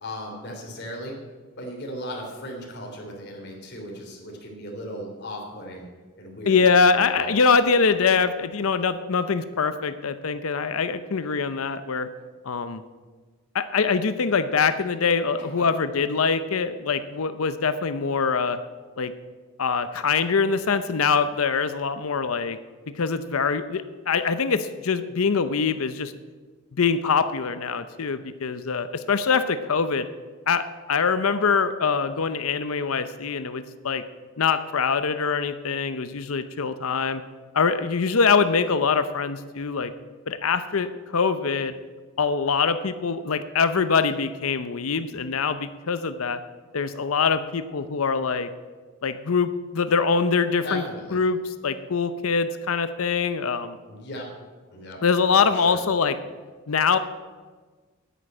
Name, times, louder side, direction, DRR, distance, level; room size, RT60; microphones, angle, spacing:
voice 1, 0.0-1.2 1.6-5.8 6.2-6.6 7.0-7.3 15.6-15.7 50.6-51.2 53.9-54.3 54.7-55.0 55.5-55.8, equal, 55° left, 0 dB, 3.4 m, -37 dB
voice 2, 6.5-12.1 12.4-12.8 13.5-18.6 19.0-19.1 19.6-22.6 23.0-26.1 26.8-30.1 30.5-34.0 34.4-37.2 37.5-39.9 40.3-41.7 42.2-46.4 46.7-48.5 49.0-50.8 51.1-53.8 55.0-56.2 56.7-57.0, left 5 dB, 80° left, 12 dB, 0.7 m, -23 dB
10.0 x 9.3 x 8.8 m, 1.4 s
head